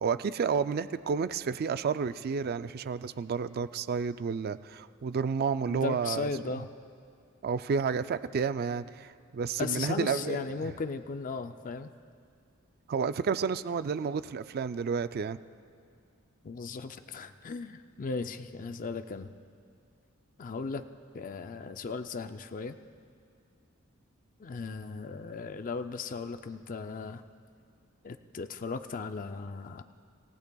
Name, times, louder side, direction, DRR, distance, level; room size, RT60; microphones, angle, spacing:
voice 1, 0.0-6.6 7.4-10.7 12.9-15.4, right 5 dB, 45° right, 13 dB, 0.4 m, -31 dB
voice 2, 5.7-6.7 9.6-11.9 16.4-19.3 20.4-20.9 21.1-22.8 24.4-27.2 28.0-29.8, left 4 dB, 40° left, 9 dB, 0.4 m, -36 dB
27.0 x 15.5 x 2.3 m, 2.3 s
head